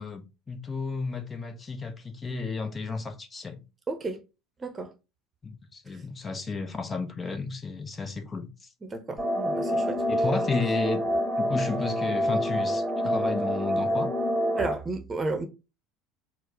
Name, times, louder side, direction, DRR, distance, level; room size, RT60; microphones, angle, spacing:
voice 1, 0.0-3.6 5.4-8.7 10.1-11.0 11.4-14.1, left 4 dB, 25° left, 0.7 m, -33 dB
voice 2, 3.9-4.2 4.6-4.9 8.8-10.0 14.6-15.5, right 3 dB, 25° right, 0.9 m, -32 dB
sound 1, 9.2-14.7, equal, ahead, 1.4 m, -27 dB
4.5 x 2.2 x 4.7 m
figure-of-eight pair, 65°, 0 cm